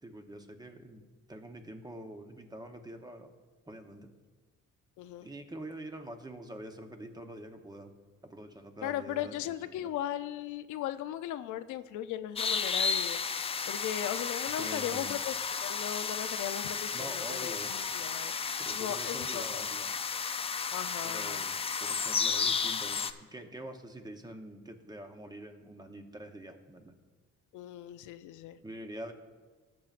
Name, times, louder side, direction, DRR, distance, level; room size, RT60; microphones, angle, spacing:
voice 1, 0.0-1.0 1.3-3.3 3.7-4.1 5.2-7.9 8.2-9.9 14.6-15.1 16.9-17.7 18.6-19.9 21.0-26.9 28.6-29.1, right 1 dB, 15° right, 5 dB, 0.9 m, -45 dB
voice 2, 5.0-5.3 8.8-13.2 13.7-19.7 20.7-21.4 27.5-28.6, left 12 dB, 90° left, 12 dB, 0.5 m, -37 dB
sound 1, 12.4-23.1, left 5 dB, 20° left, 0.3 m, -33 dB
18.5 x 7.4 x 2.5 m, 1.4 s
cardioid pair, 125°, 29 cm